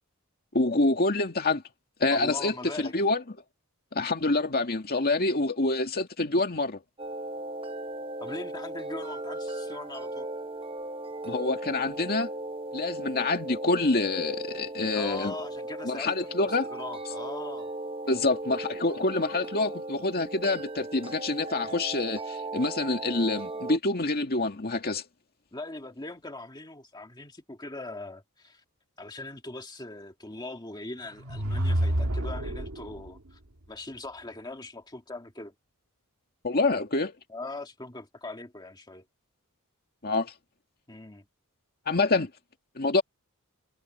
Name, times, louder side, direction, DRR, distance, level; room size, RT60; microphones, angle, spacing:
voice 1, 0.5-1.6 2.0-3.2 3.9-6.8 11.2-12.3 12.7-15.3 15.8-16.7 18.1-25.0 36.4-37.2 40.0-40.3 41.9-42.3 42.8-43.0, left 2 dB, 45° left, 2.2 m, -26 dB
voice 2, 2.1-2.9 8.2-10.3 14.8-17.7 25.5-28.6 29.0-33.4 33.7-35.5 37.3-39.1 40.9-41.2, left 2 dB, 20° left, 2.0 m, -41 dB
sound 1, 7.0-23.8, right 2 dB, 25° right, 1.1 m, -37 dB
sound 2, 31.1-33.1, right 1 dB, 80° right, 2.0 m, -28 dB
head